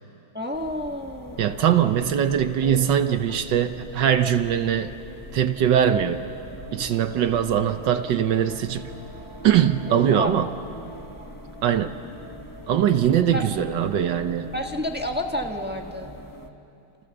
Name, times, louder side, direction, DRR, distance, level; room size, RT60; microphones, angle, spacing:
voice 1, 0.3-1.6 2.6-2.8 9.8-10.3 13.3-13.4 14.5-16.1, left 1 dB, 5° right, 2 dB, 1.1 m, -30 dB
sound 1, 0.5-16.5, equal, 15° left, 0.7 m, -42 dB
voice 2, 1.4-4.9 5.3-6.3 6.7-8.9 9.4-10.5 11.6-12.0 12.7-14.5, right 9 dB, 65° right, 9 dB, 1.4 m, -21 dB
29.0 x 28.0 x 7.0 m, 2.9 s
omnidirectional pair, 2.2 m